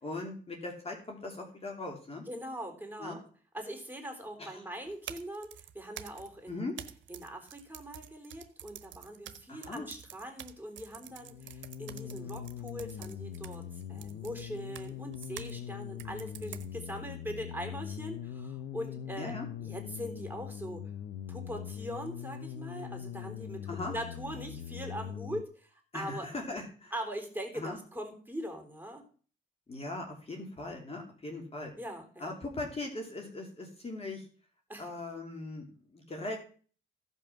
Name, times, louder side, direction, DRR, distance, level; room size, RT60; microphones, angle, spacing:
voice 1, 0.0-2.2 3.0-3.2 4.4-4.6 6.5-6.7 9.5-9.9 19.2-19.5 23.7-23.9 25.9-26.9 27.5-27.8 29.7-31.7 32.2-34.3 34.8-36.4, left 2 dB, 30° left, 2 dB, 2.7 m, -39 dB
voice 2, 2.3-3.2 3.5-5.5 5.7-6.6 7.1-19.3 19.6-20.8 21.3-23.6 23.9-26.3 26.9-29.0 31.7-32.3 34.7-34.9, equal, 10° right, 3 dB, 3.7 m, -41 dB
sound 1, 4.9-15.6 16.0-17.0, right 11 dB, 70° right, 1.1 m, -48 dB
sound 2, 11.0-25.4, left 9 dB, 90° left, 0.7 m, -42 dB
15.5 x 5.5 x 5.9 m, 0.42 s
cardioid pair, 90°, 20 cm